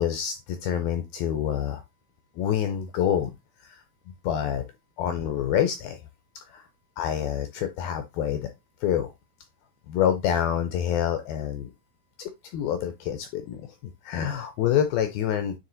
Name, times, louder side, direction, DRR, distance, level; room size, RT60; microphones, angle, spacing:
voice 1, 0.0-1.8 2.4-3.3 3.6-3.8 4.2-4.7 5.0-6.0 6.4-6.6 7.0-8.5 8.8-9.1 9.9-11.7 12.2-13.7 14.0-15.6, left 9 dB, 80° left, 8 dB, 2.2 m, -27 dB
9.8 x 3.4 x 3.9 m, 0.21 s
omnidirectional pair, 4.9 m